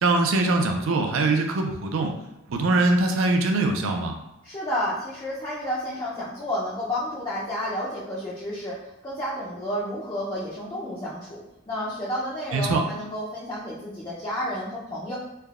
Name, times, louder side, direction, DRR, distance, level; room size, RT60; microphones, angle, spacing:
voice 1, 0.0-2.1 2.5-4.1 12.5-12.8, right 2 dB, 70° right, 4 dB, 0.4 m, -22 dB
voice 2, 4.4-15.2, equal, 20° left, -8 dB, 0.4 m, -31 dB
3.3 x 2.1 x 2.3 m, 0.88 s
head